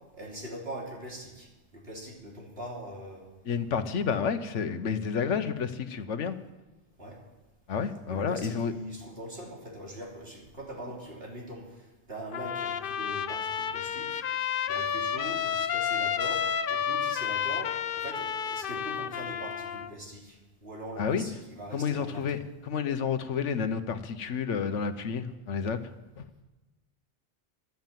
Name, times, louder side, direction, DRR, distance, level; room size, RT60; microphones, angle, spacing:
voice 1, 0.1-3.3 7.0-7.2 8.1-14.2 14.7-22.2, right 1 dB, 55° right, -2 dB, 3.6 m, -42 dB
voice 2, 3.4-6.3 7.7-8.7 21.0-21.2 21.7-25.8 26.2-26.3, left 6 dB, 90° left, 11 dB, 1.2 m, -30 dB
Trumpet, 12.3-19.9, left 8 dB, 55° left, 0.7 m, -31 dB
13.0 x 12.0 x 7.5 m, 1.1 s
omnidirectional pair, 1.2 m